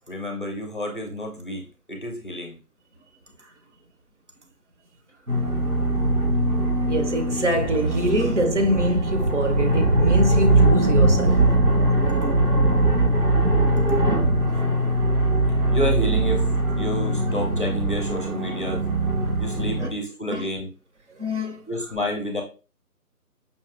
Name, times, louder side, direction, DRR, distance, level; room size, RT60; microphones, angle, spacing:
voice 1, 0.1-2.6 15.7-16.5 16.8-18.9 19.4-20.7 21.7-22.4, left 1 dB, 35° left, 0.6 m, -29 dB
sound 1, 5.3-19.9, right 2 dB, 75° right, 1.7 m, -21 dB
voice 2, 6.8-11.5 19.8-19.9 20.3-20.5 21.1-21.6, equal, 50° right, 0.6 m, -25 dB
5.3 x 2.6 x 2.5 m
figure-of-eight pair, 160°, 46 cm